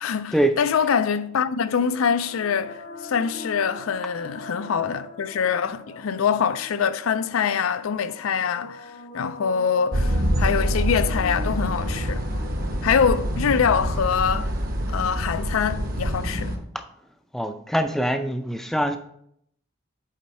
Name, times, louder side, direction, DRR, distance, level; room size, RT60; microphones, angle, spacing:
voice 1, 0.0-12.2 12.8-14.5 14.9-16.5, left 7 dB, 80° left, 0.4 m, -24 dB
sound 1, 1.2-15.2, left 3 dB, 65° left, 1.0 m, -42 dB
sound 2, 9.9-16.6, equal, 45° right, 0.9 m, -26 dB
voice 2, 17.3-19.0, right 1 dB, ahead, 0.4 m, -23 dB
7.2 x 4.5 x 4.2 m
head